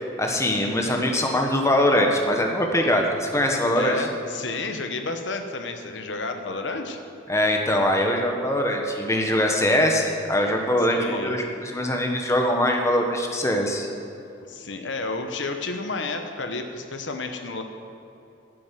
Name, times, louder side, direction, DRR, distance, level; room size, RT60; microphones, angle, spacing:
voice 1, 0.0-4.1 7.3-13.9, left 1 dB, 15° left, 2 dB, 1.2 m, -22 dB
voice 2, 3.8-7.0 11.0-11.4 14.5-17.6, left 3 dB, 70° left, 6 dB, 1.0 m, -31 dB
9.9 x 7.5 x 9.2 m, 2.9 s
head